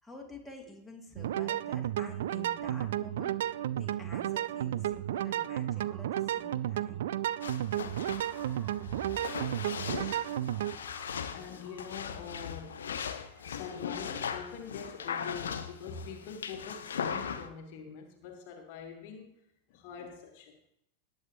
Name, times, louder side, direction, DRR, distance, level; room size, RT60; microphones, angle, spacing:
voice 1, 0.0-3.3 3.7-7.0 8.9-9.1, left 1 dB, ahead, -3 dB, 2.4 m, -49 dB
sound 1, 1.2-10.8, right 12 dB, 60° right, 0.3 m, -33 dB
sound 2, 3.3-17.8, right 1 dB, 25° right, 5.3 m, -60 dB
sound 3, 7.4-17.5, left 7 dB, 65° left, 0.8 m, -39 dB
voice 2, 9.8-10.2 11.3-12.8 13.4-19.4 19.7-20.7, left 6 dB, 45° left, 4 dB, 1.3 m, -44 dB
18.5 x 7.7 x 3.0 m, 0.79 s
figure-of-eight pair, 90°, 0 cm